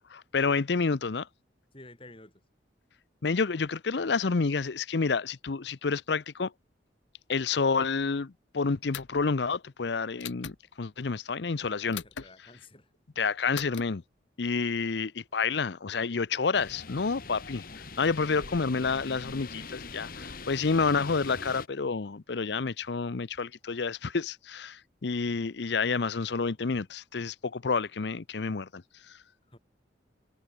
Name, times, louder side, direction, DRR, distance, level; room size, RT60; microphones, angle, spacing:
voice 1, 0.3-1.3 3.2-6.5 7.3-12.0 13.2-14.0 14.4-17.6 18.0-28.8 29.1-29.2, left 4 dB, 70° left, 0.6 m, -29 dB
voice 2, 1.7-2.3 11.6-12.9 17.9-18.5 29.5-29.6, left 2 dB, 30° left, 6.3 m, -52 dB
sound 1, 8.9-9.3 10.2-10.6 11.9-12.3 13.5-13.8, left 8 dB, 85° left, 1.2 m, -39 dB
sound 2, 16.5-21.7, left 4 dB, 50° left, 2.0 m, -43 dB
head